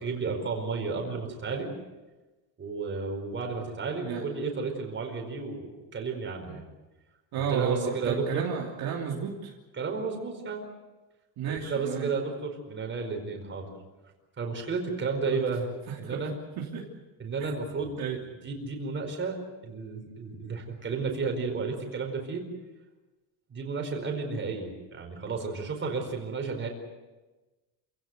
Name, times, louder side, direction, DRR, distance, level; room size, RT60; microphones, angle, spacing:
voice 1, 0.0-1.8 2.6-6.6 7.4-8.4 9.8-10.6 11.5-13.7 14.4-15.7 16.0-16.3 17.2-19.4 19.6-22.4 23.5-26.7, right 4 dB, 25° right, 3 dB, 4.8 m, -32 dB
voice 2, 3.9-4.2 7.3-9.5 11.4-12.1 15.3-15.4 15.9-16.3 16.6-16.9 18.0-18.2, right 8 dB, 50° right, -2 dB, 3.1 m, -32 dB
28.0 x 17.0 x 8.1 m, 1.2 s
cardioid pair, 155°, 45 cm